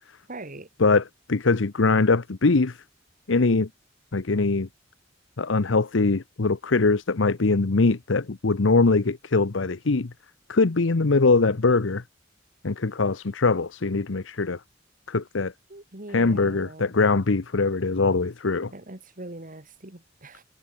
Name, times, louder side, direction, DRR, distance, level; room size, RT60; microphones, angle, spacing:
voice 1, 0.3-0.7 15.7-16.9 18.7-20.4, right 2 dB, 45° right, 2.8 m, -41 dB
voice 2, 1.3-2.8 3.3-3.7 4.1-4.7 5.4-10.1 10.5-12.0 12.6-14.6 15.1-15.5 16.1-18.7, left 3 dB, 75° left, 0.9 m, -22 dB
head